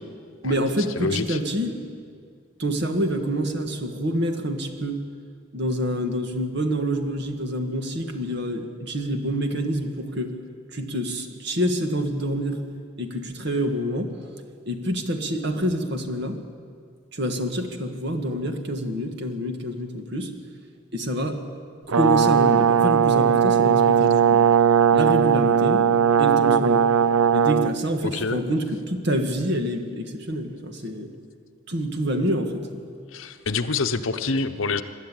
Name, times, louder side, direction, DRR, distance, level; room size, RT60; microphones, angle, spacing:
voice 1, 0.4-1.8 2.6-5.0 5.5-10.3 10.7-12.6 13.0-14.1 14.6-16.4 17.1-20.3 20.9-21.4 22.0-24.4 24.9-25.9 26.2-26.9 27.3-31.1 31.7-32.8, equal, 55° right, 5 dB, 1.9 m, -27 dB
voice 2, 1.0-1.4 28.0-28.4 33.1-34.8, left 4 dB, 75° left, 10 dB, 0.9 m, -26 dB
Brass instrument, 21.9-27.7, right 8 dB, 90° right, 0.6 m, -18 dB
24.0 x 12.0 x 9.0 m, 2.1 s
head